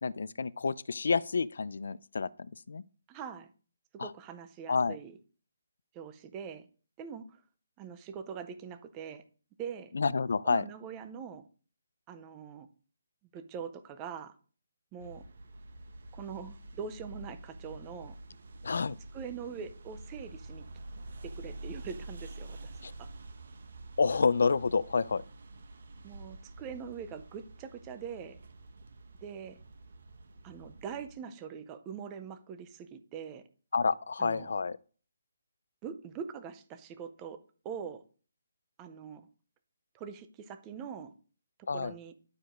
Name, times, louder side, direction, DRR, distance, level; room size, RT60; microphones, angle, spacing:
voice 1, 0.0-2.8 4.0-4.1 4.7-5.0 9.9-10.6 18.6-19.0 22.8-22.9 24.0-25.2 33.7-34.8 41.7-41.9, left 5 dB, 55° left, 0.4 m, -29 dB
voice 2, 3.1-3.5 3.9-5.2 5.9-6.7 7.0-7.4 7.8-9.2 9.6-10.0 10.4-11.4 12.1-12.7 13.3-14.4 14.9-15.2 16.1-18.2 19.1-20.6 21.2-22.7 23.0-23.1 26.0-28.4 29.2-29.6 30.4-33.4 34.2-34.5 35.8-37.4 37.6-38.0 38.8-39.3 39.9-41.1 41.7-42.1, right 7 dB, 10° right, 0.5 m, -43 dB
sound 1, 15.0-31.1, right 2 dB, 45° right, 1.0 m, -48 dB
11.5 x 4.8 x 5.0 m
hypercardioid pair, 180°, 0 cm